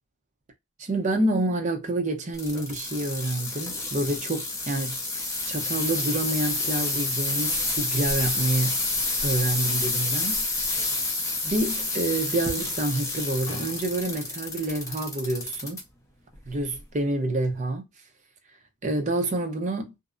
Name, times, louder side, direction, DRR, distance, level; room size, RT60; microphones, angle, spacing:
voice 1, 0.8-8.8 9.2-10.8 11.4-15.8 16.5-17.8 18.8-19.9, right 2 dB, 35° right, 0.5 m, -28 dB
sound 1, 2.3-15.8 16.3-16.8 17.4-17.5, left 2 dB, 15° left, 0.5 m, -29 dB
sound 2, 13.4-14.7 15.5-15.6, left 2 dB, 70° left, 0.6 m, -46 dB
2.6 x 2.0 x 2.4 m
head